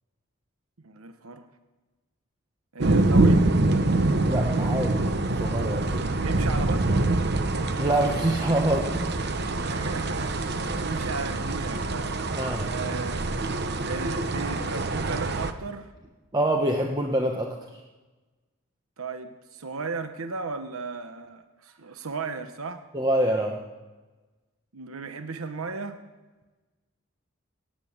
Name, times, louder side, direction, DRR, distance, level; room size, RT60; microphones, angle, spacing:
voice 1, 0.8-1.4 2.7-3.6 6.2-7.1 9.5-13.4 13.8-15.9 19.0-22.8 24.7-26.0, right 4 dB, 90° right, 8 dB, 1.0 m, -35 dB
sound 1, 2.8-15.5, right 2 dB, 50° right, 0.9 m, -25 dB
voice 2, 4.2-6.1 7.8-9.1 12.4-12.6 16.3-17.6 22.9-23.6, right 1 dB, 20° right, 1 dB, 1.0 m, -25 dB
18.0 x 7.7 x 8.7 m, 1.2 s
head